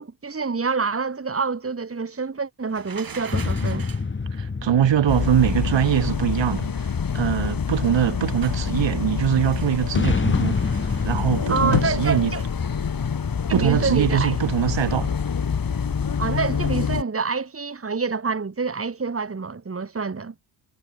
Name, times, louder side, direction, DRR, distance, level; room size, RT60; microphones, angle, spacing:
voice 1, 0.0-3.9 11.5-12.4 13.5-14.4 16.2-20.3, right 4 dB, 30° right, 3.1 m, -27 dB
sound 1, 2.7-4.1 7.9-8.7 9.3-10.0 10.3-12.6 14.9-15.1, right 6 dB, 45° right, 5.2 m, -43 dB
sound 2, 3.3-7.0 9.9-13.7, left 4 dB, 25° left, 1.8 m, -28 dB
voice 2, 4.4-6.9 7.1-10.6 11.0-12.3 13.5-15.1, right 10 dB, 65° right, 4.1 m, -22 dB
sound 3, 5.1-17.0, left 6 dB, 45° left, 4.0 m, -26 dB
supercardioid pair, 60°, 47 cm